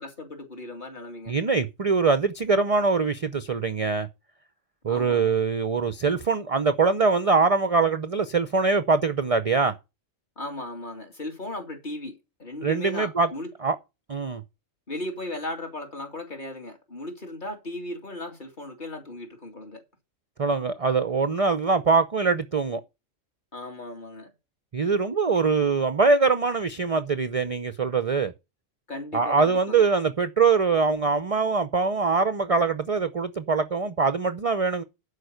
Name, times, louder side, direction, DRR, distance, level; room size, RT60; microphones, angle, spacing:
voice 1, 0.0-1.3 4.9-5.3 10.4-13.5 14.9-19.8 23.5-24.3 25.3-25.4 28.9-29.8, left 1 dB, 35° left, 2.5 m, -36 dB
voice 2, 1.3-4.1 4.8-9.8 12.6-13.3 13.6-13.8 14.1-14.4 20.4-22.8 24.7-28.3 29.1-34.8, right 4 dB, 40° right, 0.5 m, -23 dB
11.5 x 5.0 x 6.5 m
omnidirectional pair, 1.4 m